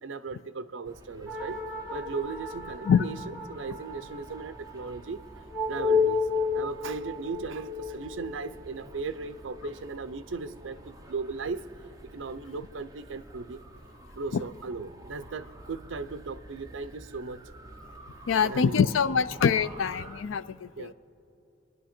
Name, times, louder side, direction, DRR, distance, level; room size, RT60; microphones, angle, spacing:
voice 1, 0.0-1.6 1.9-6.3 6.5-11.7 12.1-13.6 14.1-17.4 18.4-18.9 19.3-19.4 20.8-20.9, right 4 dB, 70° right, 12 dB, 0.6 m, -37 dB
sound 1, 0.8-20.2, right 1 dB, 20° right, 0.9 m, -50 dB
sound 2, 1.3-10.1, left 4 dB, ahead, 1.3 m, -32 dB
voice 2, 18.3-20.9, left 6 dB, 70° left, 16 dB, 0.4 m, -24 dB
27.5 x 11.0 x 4.4 m, 2.7 s
head